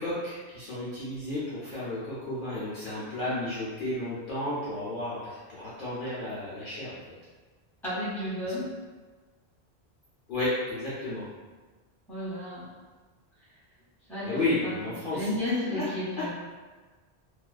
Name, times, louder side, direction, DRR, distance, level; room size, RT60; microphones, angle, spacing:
voice 1, 0.0-7.0 10.3-11.2 14.3-15.2 15.7-15.8, left 2 dB, 60° left, -9 dB, 0.7 m, -32 dB
voice 2, 7.8-8.7 12.1-12.7 14.1-16.3, left 1 dB, ahead, -11 dB, 1.0 m, -33 dB
2.6 x 2.2 x 2.3 m, 1.3 s
omnidirectional pair, 1.1 m